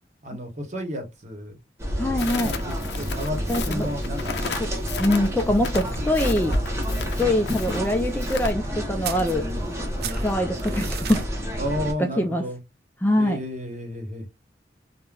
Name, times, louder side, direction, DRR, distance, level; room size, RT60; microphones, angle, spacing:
voice 1, 0.2-1.6 2.3-4.4 11.6-12.6 13.2-14.2, equal, 40° right, 0.9 m, -32 dB
sound 1, 1.8-11.9, equal, 15° right, 0.7 m, -29 dB
voice 2, 2.0-2.5 3.5-3.9 4.6-4.7 5.0-6.6 7.0-9.5 10.1-11.3 12.2-12.4 13.0-13.4, left 1 dB, 10° left, 0.3 m, -24 dB
Crackle, 2.2-8.5, left 5 dB, 65° left, 0.5 m, -35 dB
sound 2, 9.0-9.8 10.0-11.3, right 9 dB, 55° right, 0.4 m, -35 dB
3.6 x 2.1 x 2.3 m
head